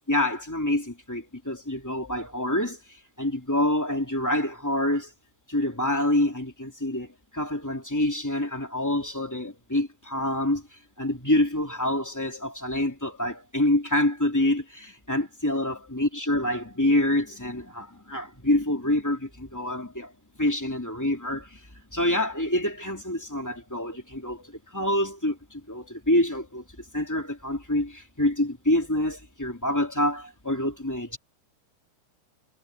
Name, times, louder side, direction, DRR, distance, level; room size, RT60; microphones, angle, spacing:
voice 1, 0.1-2.8 3.2-5.1 5.5-7.1 7.3-10.6 11.0-20.1 20.4-21.4 21.9-25.3 25.7-26.6 26.9-31.2, left 1 dB, 10° left, 0.9 m, -26 dB
omnidirectional pair, 5.7 m